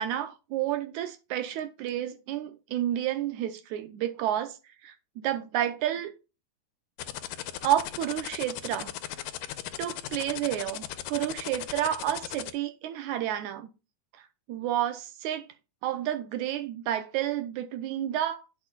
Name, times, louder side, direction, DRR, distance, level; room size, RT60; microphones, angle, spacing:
voice 1, 0.0-4.6 4.8-6.1 7.6-8.9 9.8-13.7 14.5-15.5 15.8-18.4, right 12 dB, 80° right, 1.8 m, -30 dB
sound 1, 7.0-12.5, left 13 dB, 80° left, 2.4 m, -36 dB
9.7 x 6.5 x 2.3 m
omnidirectional pair, 3.9 m